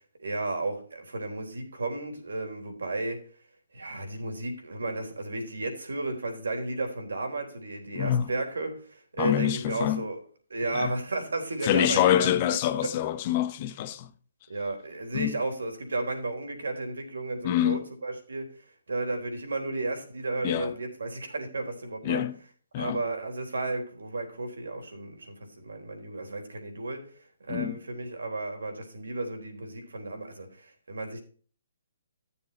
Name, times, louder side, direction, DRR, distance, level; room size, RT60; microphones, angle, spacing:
voice 1, 0.2-3.2 3.7-10.2 10.5-12.3 14.5-18.5 18.9-22.2 22.7-27.0 27.4-31.2, right 2 dB, 75° right, 3.8 m, -33 dB
voice 2, 7.9-8.3 9.2-10.0 10.7-10.9 11.6-14.1 15.1-15.3 17.4-17.9 20.4-20.7 22.0-22.4 22.7-23.0 27.5-27.8, left 11 dB, 35° left, 1.0 m, -26 dB
13.0 x 7.1 x 4.3 m
figure-of-eight pair, 135°, 0 cm